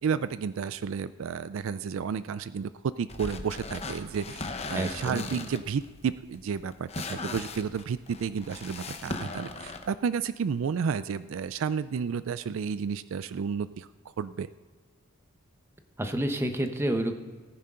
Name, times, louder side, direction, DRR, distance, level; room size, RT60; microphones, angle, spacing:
voice 1, 0.0-2.7 3.0-14.5, right 6 dB, 65° right, 15 dB, 0.3 m, -32 dB
sound 1, 3.1-9.9, left 3 dB, 30° left, 0.9 m, -38 dB
voice 2, 4.7-5.2 16.0-17.1, right 1 dB, 10° right, 6 dB, 0.9 m, -29 dB
18.0 x 10.0 x 3.8 m, 1.4 s
head